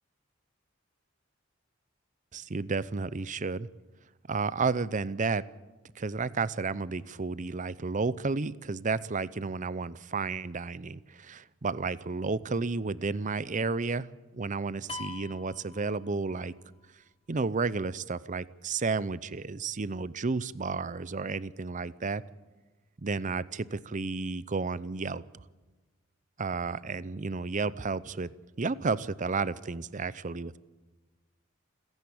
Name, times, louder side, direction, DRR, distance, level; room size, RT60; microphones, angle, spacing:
voice 1, 2.3-3.7 4.3-5.4 6.0-14.1 14.3-16.5 17.3-22.2 23.0-25.2 26.4-28.3 28.6-30.6, right 4 dB, 40° right, 18 dB, 0.6 m, -32 dB
sound 1, 14.9-16.6, left 4 dB, 30° left, 1.3 m, -43 dB
29.0 x 11.0 x 8.7 m, 1.2 s
head